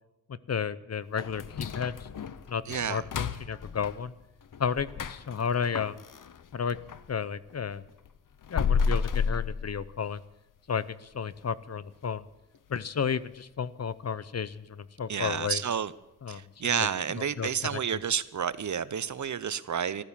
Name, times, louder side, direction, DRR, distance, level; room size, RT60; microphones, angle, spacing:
voice 1, 0.3-2.1 2.5-4.1 4.6-6.0 6.5-6.8 7.1-7.8 8.5-10.2 10.7-12.3 12.7-15.6 16.2-16.4 17.4-18.0, left 6 dB, 55° left, 0.6 m, -32 dB
sound 1, 1.2-7.1 7.5-10.3 10.7-10.8 11.3-11.4 11.9-12.2 12.5-12.6 13.2-13.3, left 6 dB, 85° left, 0.7 m, -33 dB
voice 2, 2.7-3.0 15.1-15.9 16.3-20.0, right 7 dB, 65° right, 0.7 m, -30 dB
14.0 x 13.0 x 7.3 m
wide cardioid pair, 95°, 31 cm